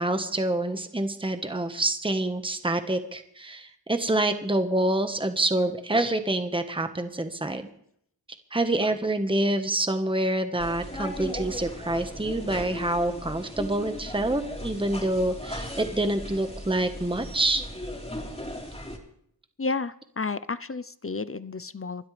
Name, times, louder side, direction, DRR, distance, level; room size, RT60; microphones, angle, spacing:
voice 1, 0.0-7.7 8.5-17.7, right 1 dB, 15° right, 8 dB, 1.3 m, -27 dB
sound 1, 10.6-19.0, equal, 15° left, 3.9 m, -37 dB
voice 2, 19.6-22.1, left 4 dB, 35° left, 15 dB, 0.6 m, -32 dB
29.0 x 12.5 x 3.4 m, 0.69 s
wide cardioid pair, 70°, 40 cm